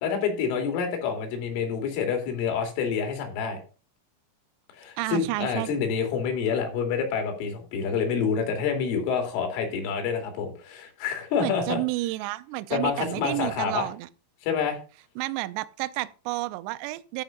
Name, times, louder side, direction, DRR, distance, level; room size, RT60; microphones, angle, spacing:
voice 1, 0.0-3.6 4.7-11.8 12.7-13.9 14.4-14.8, left 6 dB, 90° left, 5.2 m, -27 dB
voice 2, 5.0-5.7 11.4-14.1 15.2-17.2, right 18 dB, 80° right, 2.6 m, -30 dB
13.0 x 5.8 x 5.2 m
omnidirectional pair, 5.5 m